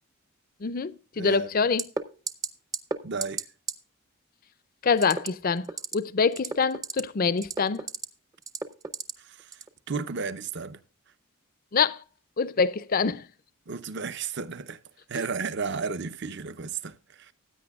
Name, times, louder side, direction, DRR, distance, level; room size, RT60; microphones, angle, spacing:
voice 1, 0.6-1.8 4.8-5.7 5.9-7.8 11.7-12.0 12.4-13.2, left 5 dB, 40° left, 0.5 m, -25 dB
voice 2, 1.2-1.5 3.0-3.5 9.2-9.5 9.9-10.8 13.7-14.8 15.1-17.3, right 5 dB, 50° right, 0.7 m, -33 dB
sound 1, 1.8-2.0 2.3-2.5 2.7-3.0 3.2-3.4 3.7-3.8 5.0-5.3 5.6-5.9 6.3-7.0 7.4-8.0 8.5-9.1 9.5-9.7, right 4 dB, 15° right, 0.6 m, -31 dB
15.5 x 9.2 x 2.4 m
head